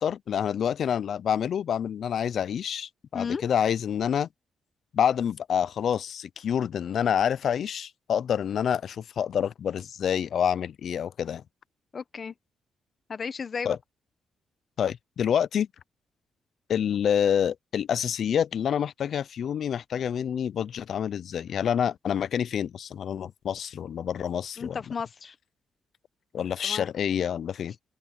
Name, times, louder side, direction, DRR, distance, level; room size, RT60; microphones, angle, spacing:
voice 1, 0.0-4.3 4.9-11.4 13.7-13.8 14.8-15.7 16.7-24.8 26.3-27.7, left 8 dB, 55° left, 0.4 m, -27 dB
voice 2, 11.9-12.3 13.1-13.8 24.6-25.3 26.6-26.9, left 5 dB, 35° left, 0.9 m, -33 dB
open air
cardioid pair, 140°, 0 cm